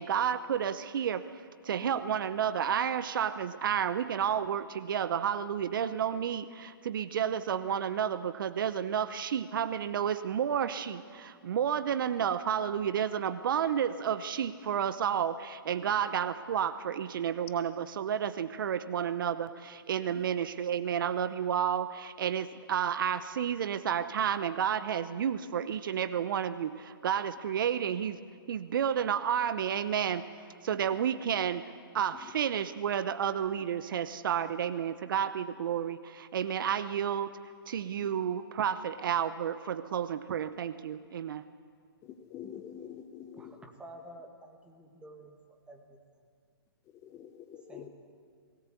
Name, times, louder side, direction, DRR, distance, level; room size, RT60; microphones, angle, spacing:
voice 1, 0.0-28.2 28.5-30.2 30.6-31.6 31.9-37.3 37.7-41.5, right 8 dB, 60° right, 13 dB, 0.9 m, -31 dB
voice 2, 42.0-43.5 47.0-47.9, left 9 dB, 20° left, 9 dB, 1.1 m, -45 dB
voice 3, 43.4-46.0 47.7-47.9, right 1 dB, 10° right, 3 dB, 2.0 m, -50 dB
21.0 x 18.0 x 8.3 m, 2.1 s
hypercardioid pair, 140°, 13 cm